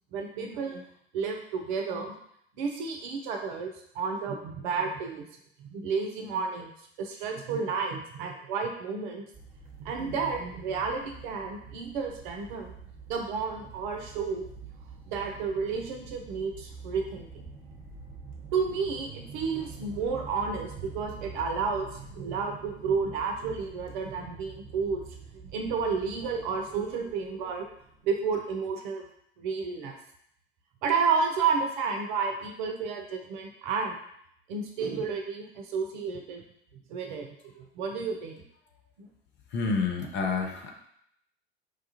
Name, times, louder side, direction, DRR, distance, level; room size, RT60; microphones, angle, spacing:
voice 1, 0.1-0.8 1.1-2.1 2.6-5.2 5.6-6.7 7.0-9.2 9.8-12.7 13.1-14.5 15.1-17.4 18.5-25.0 25.5-27.7 28.0-29.0 29.4-30.0 30.8-34.0 34.5-36.4 36.9-38.4 39.0-39.1, right 5 dB, 55° right, 3 dB, 0.6 m, -31 dB
sound 1, 9.3-28.3, right 5 dB, 30° right, 1.1 m, -46 dB
voice 2, 39.5-40.7, left 4 dB, 40° left, 2 dB, 0.7 m, -28 dB
4.8 x 2.4 x 2.8 m, 0.71 s
figure-of-eight pair, 70°, 29 cm